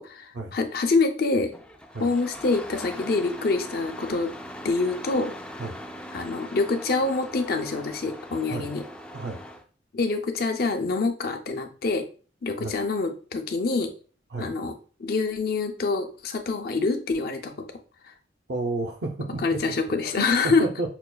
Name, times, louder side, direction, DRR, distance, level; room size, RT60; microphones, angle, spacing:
voice 1, 0.0-1.5 2.0-4.3 4.6-5.3 6.1-8.8 9.9-12.0 12.4-13.9 14.4-14.7 15.0-17.5 19.4-20.6, left 3 dB, 55° left, 5 dB, 0.5 m, -26 dB
Engine starting, 1.5-9.6, equal, 5° left, 0.3 m, -41 dB
voice 2, 18.5-20.9, right 2 dB, 60° right, 2 dB, 0.5 m, -32 dB
5.8 x 2.3 x 2.2 m, 0.39 s
head